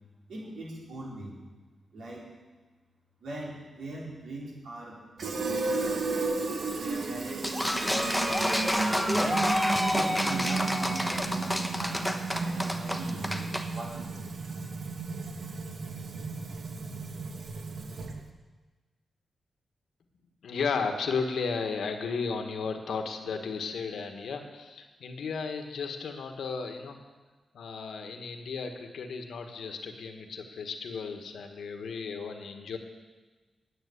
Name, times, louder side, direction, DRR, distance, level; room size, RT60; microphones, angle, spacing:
voice 1, 0.3-1.4 1.9-2.2 3.2-5.0 5.3-6.0 6.8-8.6 9.2-9.5 9.9-12.0 12.4-14.1, right 2 dB, 90° right, -4 dB, 4.2 m, -41 dB
Fill (with liquid), 5.2-18.3, right 3 dB, 60° right, 1.2 m, -33 dB
sound 1, 7.4-13.7, left 1 dB, ahead, 1.1 m, -29 dB
voice 2, 20.4-27.0 27.5-32.8, left 5 dB, 85° left, 5 dB, 1.4 m, -34 dB
9.9 x 8.9 x 8.3 m, 1.3 s
cardioid pair, 95°, 0 cm